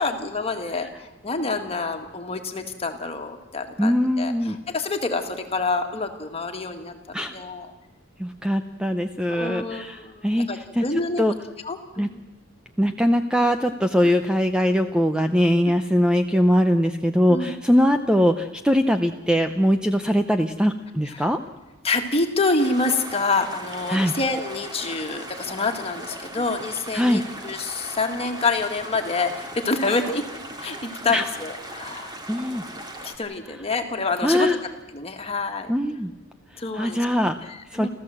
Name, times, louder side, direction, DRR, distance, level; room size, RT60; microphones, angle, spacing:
voice 1, 0.0-4.3 4.7-7.7 9.3-11.2 11.6-12.1 14.0-14.1 17.3-17.5 21.8-30.2 30.6-32.1 33.0-34.5 34.9-35.7 36.6-37.0 37.5-37.9, left 3 dB, 30° left, 4 dB, 2.0 m, -27 dB
voice 2, 3.8-4.6 7.1-7.3 8.2-11.3 12.0-12.1 12.8-21.4 23.9-24.1 26.9-27.2 31.1-31.3 32.3-32.7 33.5-33.6 34.2-34.6 35.7-36.1 36.5-37.9, equal, 5° right, 7 dB, 0.6 m, -22 dB
sound 1, 22.6-33.2, right 1 dB, 20° right, 2.0 m, -38 dB
30.0 x 13.5 x 7.8 m, 1.1 s
head